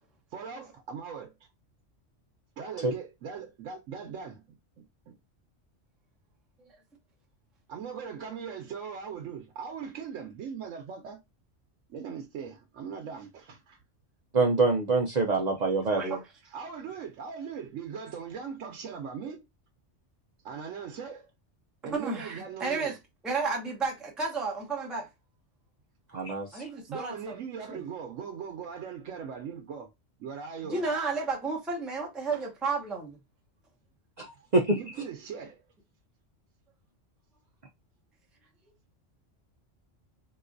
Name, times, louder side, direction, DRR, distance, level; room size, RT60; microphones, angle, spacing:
voice 1, 0.3-1.5 2.6-4.4 4.8-5.1 7.7-11.2 11.9-13.8 16.5-19.5 20.4-21.3 21.8-23.0 26.9-29.9 30.2-30.8 34.7-35.6, right 6 dB, 85° right, 1.0 m, -40 dB
voice 2, 14.3-16.0 26.1-26.6 34.2-34.8, right 3 dB, 50° right, 0.5 m, -25 dB
voice 3, 21.8-23.0 23.2-25.1 26.5-27.3 27.7-27.8 30.6-33.2, right 4 dB, ahead, 0.6 m, -32 dB
3.8 x 2.4 x 2.5 m
omnidirectional pair, 1.3 m